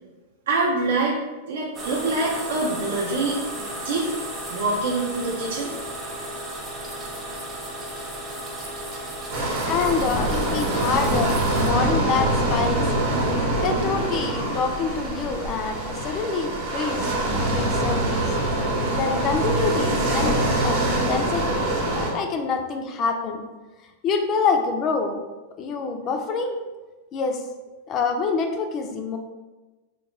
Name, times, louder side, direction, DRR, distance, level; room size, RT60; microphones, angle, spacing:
voice 1, 0.5-1.2 1.5-4.1 4.5-5.7, right 2 dB, 80° right, -5 dB, 0.6 m, -25 dB
sound 1, 1.7-11.7, right 1 dB, 15° right, 0.6 m, -34 dB
sound 2, 9.3-22.1, right 1 dB, 45° right, 0.8 m, -24 dB
voice 2, 9.7-12.8 13.6-17.1 17.3-18.2 18.9-21.6 21.9-23.4 24.0-25.2 25.6-26.6 27.1-27.4 27.9-29.2, left 5 dB, 25° left, 5 dB, 0.3 m, -26 dB
3.0 x 2.2 x 3.7 m, 1.2 s
supercardioid pair, 165°, 0 cm